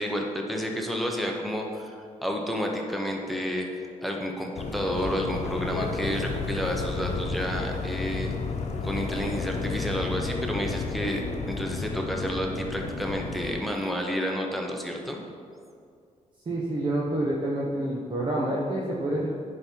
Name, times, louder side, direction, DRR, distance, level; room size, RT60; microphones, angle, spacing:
voice 1, 0.0-3.7 4.0-8.3 8.8-15.2, equal, ahead, 1 dB, 1.0 m, -30 dB
sound 1, 4.6-13.6, left 4 dB, 60° left, 1.0 m, -32 dB
voice 2, 16.4-19.3, right 1 dB, 40° right, -4 dB, 1.2 m, -28 dB
10.5 x 5.6 x 4.7 m, 2.3 s
cardioid pair, 115°, 13 cm